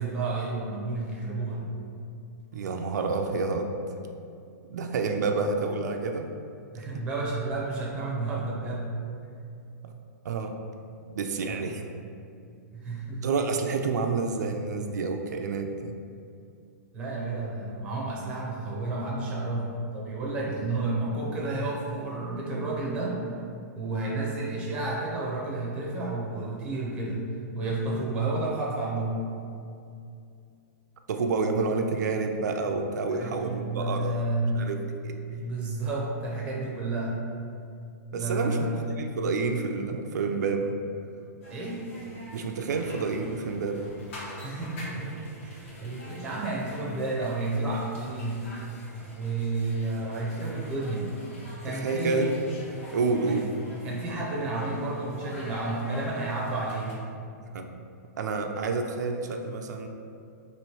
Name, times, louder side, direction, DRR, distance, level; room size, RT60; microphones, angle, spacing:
voice 1, 0.0-1.6 6.7-8.9 11.5-11.8 12.7-13.3 16.9-23.2 23.7-27.3 27.5-29.2 33.1-34.5 35.4-37.2 38.1-38.8 41.5-41.8 44.4-45.1 45.4-48.5 49.1-51.0 51.6-52.3 53.2-53.4 53.8-56.9, right 2 dB, 10° right, -5 dB, 0.6 m, -31 dB
voice 2, 2.5-3.7 4.7-6.3 9.8-9.9 10.2-10.5 11.1-11.8 13.2-15.9 20.6-20.7 31.1-34.3 34.5-35.2 38.1-38.7 39.0-40.8 42.3-43.9 51.6-52.3 52.9-53.4 57.5-57.7 58.2-59.9, right 4 dB, 80° right, 4 dB, 0.4 m, -29 dB
sound 1, 41.4-57.0, equal, 45° left, 1.0 m, -45 dB
3.1 x 3.0 x 4.4 m, 2.5 s
hypercardioid pair, 175°, 9 cm